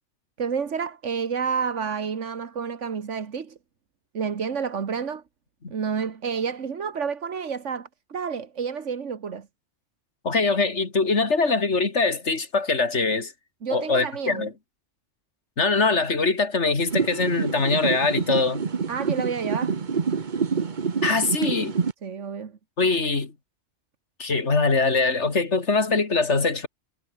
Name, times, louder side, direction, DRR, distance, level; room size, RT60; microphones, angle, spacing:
voice 1, 0.4-3.6 4.1-5.2 5.7-9.5 13.6-14.5 18.9-19.8 22.0-22.5, right 6 dB, 80° right, 1.8 m, -29 dB
voice 2, 10.2-13.3 13.7-14.5 15.6-18.6 21.0-21.8 22.8-23.3 24.2-26.7, left 3 dB, 70° left, 3.0 m, -23 dB
sound 1, 16.9-21.9, right 5 dB, 40° right, 1.2 m, -27 dB
omnidirectional pair, 1.2 m